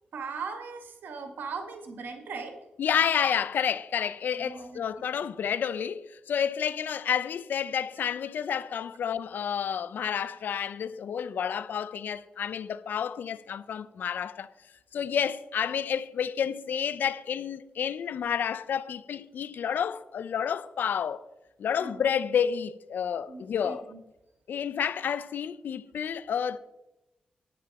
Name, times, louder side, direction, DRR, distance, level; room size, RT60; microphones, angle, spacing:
voice 1, 0.1-2.5 4.3-4.8 21.8-22.1 23.3-24.0, right 5 dB, 75° right, 1.7 m, -39 dB
voice 2, 2.8-14.5 14.9-21.2 21.6-23.9 24.5-26.6, left 8 dB, 75° left, 0.5 m, -30 dB
10.5 x 9.0 x 4.1 m
cardioid pair, 50°, 3 cm